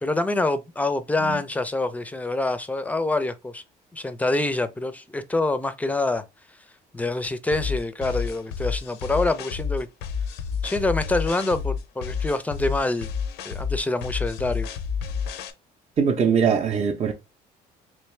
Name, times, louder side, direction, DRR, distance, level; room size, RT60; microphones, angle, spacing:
voice 1, 0.0-3.6 3.9-6.2 6.9-9.9 10.6-13.1 13.4-14.7, left 2 dB, 10° left, 0.4 m, -26 dB
sound 1, 7.5-15.5, left 6 dB, 90° left, 0.5 m, -30 dB
voice 2, 16.0-17.1, right 6 dB, 35° right, 0.6 m, -22 dB
3.3 x 3.1 x 3.1 m
cardioid pair, 110°, 17 cm